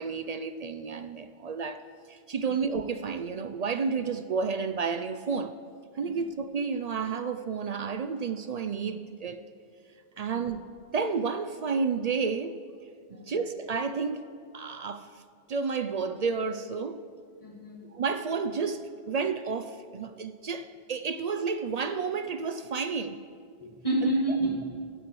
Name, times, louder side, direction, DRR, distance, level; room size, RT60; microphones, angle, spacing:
voice 1, 0.0-1.8 2.1-5.5 5.9-9.4 10.2-10.6 10.9-12.6 13.1-14.2 14.5-15.2 15.5-17.0 17.8-23.2 24.0-24.1, right 5 dB, 55° right, 0.4 m, -31 dB
voice 2, 17.4-17.8 23.6-24.6, right 1 dB, 30° left, 2.2 m, -30 dB
22.0 x 9.1 x 3.1 m
omnidirectional pair, 1.1 m